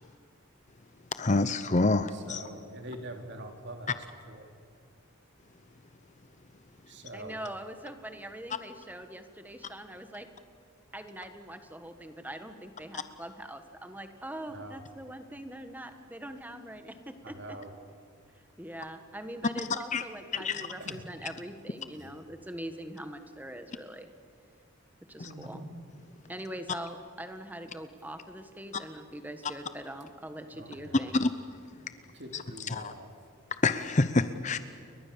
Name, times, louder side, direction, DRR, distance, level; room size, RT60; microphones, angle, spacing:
voice 1, 1.1-2.4 12.9-13.0 19.7-20.0 20.3-20.7 25.2-25.3 31.2-31.3 31.8-31.9 32.3-32.9 33.6-34.6, left 3 dB, 35° left, 11 dB, 0.7 m, -28 dB
voice 2, 2.1-4.0 4.3-4.5 6.9-7.4 14.5-14.8 17.2-17.7 20.5-21.0 21.9-22.2 25.2-25.7 30.5-31.3 32.1-33.1, right 1 dB, 55° right, 4 dB, 3.2 m, -44 dB
voice 3, 7.1-10.3 10.9-17.6 18.6-24.1 25.1-25.6 26.3-31.2, right 1 dB, 10° right, 7 dB, 1.5 m, -42 dB
29.5 x 22.5 x 7.0 m, 2.4 s
head